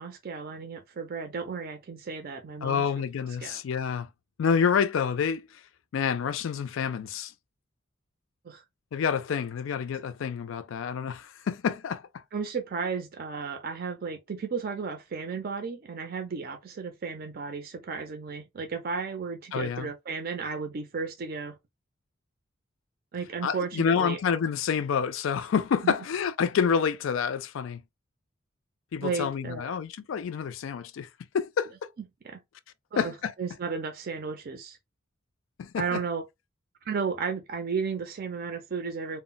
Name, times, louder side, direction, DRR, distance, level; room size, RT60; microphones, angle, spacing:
voice 1, 0.0-2.9 3.4-3.6 8.4-8.6 12.3-21.6 23.1-24.2 25.8-26.0 29.0-29.8 32.2-32.4 32.9-33.1 33.4-34.8 35.8-36.2 36.8-39.2, right 5 dB, 50° right, 0.4 m, -34 dB
voice 2, 2.6-4.1 4.4-5.6 5.9-7.3 8.9-12.2 19.5-19.9 23.4-27.8 28.9-31.1 31.3-31.9 33.0-33.3 35.6-36.0, left 6 dB, 80° left, 0.4 m, -28 dB
2.1 x 2.0 x 3.7 m
head